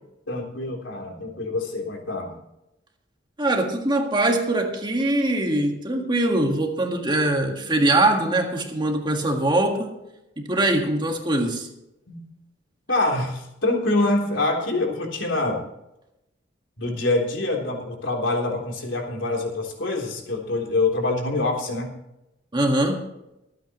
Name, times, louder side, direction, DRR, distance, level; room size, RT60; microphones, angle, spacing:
voice 1, 0.3-2.4 12.1-12.2 12.9-15.6 16.8-21.9, left 2 dB, 80° left, 0 dB, 3.6 m, -25 dB
voice 2, 3.4-10.0 10.4-11.7 22.5-23.1, right 1 dB, 25° right, 2 dB, 1.8 m, -22 dB
25.0 x 9.2 x 3.1 m, 0.90 s
head